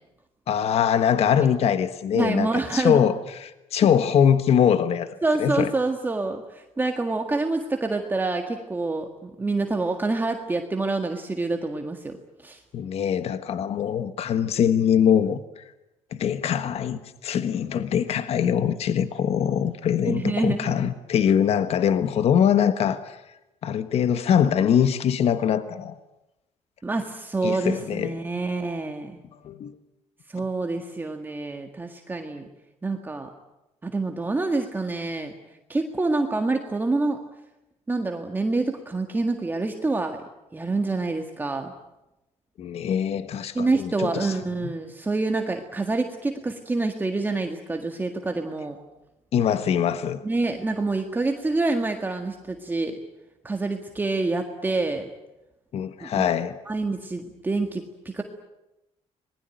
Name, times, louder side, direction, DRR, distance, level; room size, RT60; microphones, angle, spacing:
voice 1, 0.5-5.7 12.7-15.6 16.1-23.2 23.6-26.0 27.4-28.1 29.4-29.8 42.6-44.3 49.3-50.2 55.7-56.6, left 8 dB, 60° left, 1.3 m, -23 dB
voice 2, 2.1-3.0 5.2-12.2 12.4-12.6 20.1-20.9 26.8-29.2 30.3-32.5 32.8-33.3 33.8-35.3 35.7-37.2 37.9-40.2 40.5-41.7 43.6-48.8 50.2-53.0 53.4-55.1 56.0-56.3 56.7-58.2, right 3 dB, 15° right, 1.8 m, -27 dB
26.5 x 20.5 x 9.2 m
cardioid pair, 135°, 12 cm